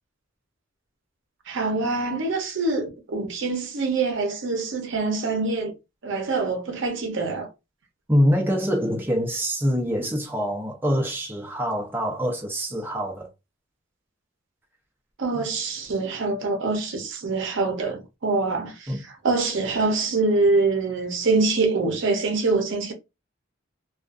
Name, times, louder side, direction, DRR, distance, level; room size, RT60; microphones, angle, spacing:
voice 1, 1.5-5.7 6.0-7.5 15.2-22.9, right 3 dB, 65° right, 0.7 m, -25 dB
voice 2, 8.1-13.3 15.3-15.5 18.9-19.0, equal, 10° right, 0.6 m, -25 dB
2.5 x 2.3 x 2.4 m
head